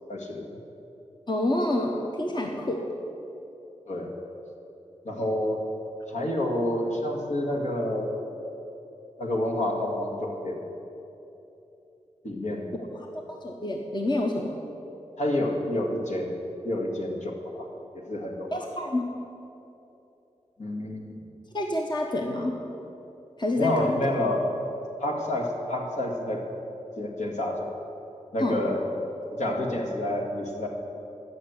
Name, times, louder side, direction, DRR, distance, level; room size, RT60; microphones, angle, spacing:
voice 1, 0.1-0.6 3.9-4.1 5.0-5.6 6.1-8.1 9.2-10.6 12.2-12.7 15.2-16.4 16.6-17.7 18.1-18.5 20.6-21.2 23.6-24.5 25.0-26.5 27.0-27.7 28.3-28.9 29.3-30.7, left 1 dB, 65° left, -1 dB, 1.9 m, -28 dB
voice 2, 1.3-2.8 12.9-14.6 18.5-19.1 21.5-22.5 23.4-24.0 28.4-28.6, left 1 dB, 35° left, 1 dB, 1.2 m, -28 dB
14.0 x 6.5 x 8.0 m, 2.9 s
cardioid pair, 50°, 13 cm